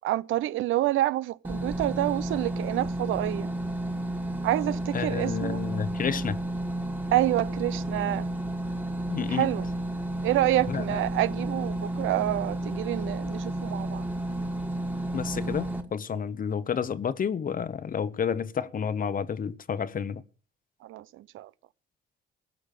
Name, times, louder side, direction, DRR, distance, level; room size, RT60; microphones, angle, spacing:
voice 1, 0.0-3.5 4.4-5.6 7.1-8.3 9.3-9.7 10.2-14.1 20.8-21.5, right 15 dB, 80° right, 0.6 m, -28 dB
sound 1, 1.4-15.8, right 1 dB, 10° right, 1.7 m, -32 dB
voice 2, 4.9-6.4 9.1-9.5 10.7-11.0 15.1-20.2, left 7 dB, 45° left, 0.9 m, -30 dB
16.0 x 6.3 x 9.1 m
cardioid pair, 90°, 20 cm